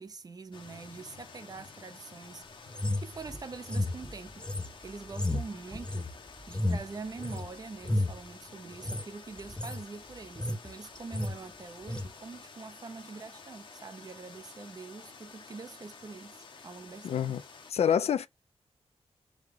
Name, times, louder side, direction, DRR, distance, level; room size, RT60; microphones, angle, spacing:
voice 1, 0.0-4.5 4.8-6.1 6.5-17.4, right 4 dB, 35° right, 0.6 m, -45 dB
sound 1, 0.5-17.7, left 4 dB, 45° left, 0.9 m, -51 dB
sound 2, 2.7-7.5 7.8-8.2 8.7-9.0 9.4-9.8 10.1-10.7 10.9-11.3 11.9-12.1, left 1 dB, 10° left, 0.5 m, -32 dB
voice 2, 17.0-17.4 17.7-18.3, left 8 dB, 70° left, 0.4 m, -26 dB
4.8 x 2.4 x 3.4 m
wide cardioid pair, 160°, 11 cm